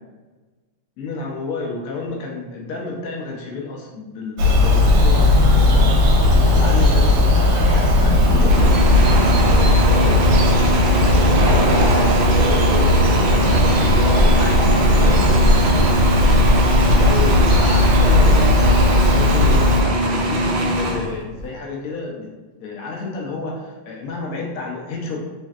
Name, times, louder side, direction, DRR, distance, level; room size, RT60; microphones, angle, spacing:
voice 1, 1.0-5.4 5.7-9.3 9.7-14.6 17.0-22.3 22.6-25.3, left 3 dB, 80° left, -2 dB, 0.8 m, -30 dB
Bird vocalization bird call bird song, 4.4-19.8, left 1 dB, 75° right, 1.2 m, -15 dB
voice 2, 6.4-6.8 13.2-16.0, equal, 55° right, -10 dB, 0.8 m, -32 dB
sound 1, 8.5-21.5, right 1 dB, 90° right, 0.8 m, -21 dB
3.1 x 2.6 x 2.3 m, 1.3 s
omnidirectional pair, 2.2 m